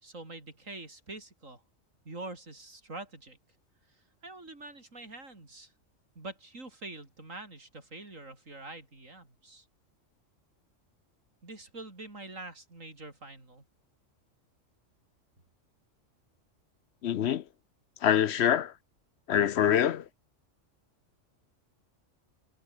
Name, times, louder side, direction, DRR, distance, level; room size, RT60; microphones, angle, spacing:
voice 1, 0.0-1.6 2.1-3.4 4.2-5.7 6.2-9.7 11.4-13.6, right 2 dB, 90° right, 5.4 m, -45 dB
voice 2, 17.0-17.4 18.0-18.7 19.3-20.1, left 9 dB, 60° left, 0.9 m, -25 dB
omnidirectional pair, 1.3 m